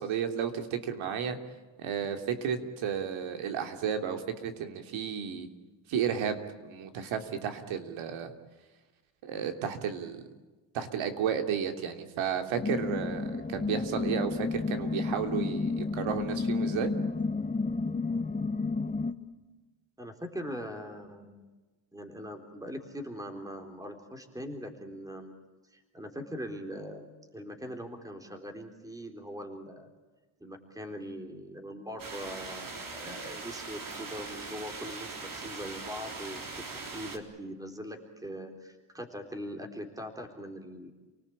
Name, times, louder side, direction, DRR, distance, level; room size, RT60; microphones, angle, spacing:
voice 1, 0.0-1.4 1.8-5.5 5.9-8.3 9.2-10.3 10.7-16.9, right 8 dB, 80° right, 6 dB, 3.2 m, -33 dB
sound 1, 12.6-19.1, left 3 dB, 15° left, 1.3 m, -31 dB
voice 2, 20.0-21.5 21.9-25.3 25.7-29.9 30.4-40.9, equal, 5° right, 5 dB, 3.8 m, -41 dB
sound 2, 32.0-37.2, right 4 dB, 45° right, 4.0 m, -41 dB
30.0 x 19.0 x 8.7 m, 1.2 s
cardioid pair, 110°, 47 cm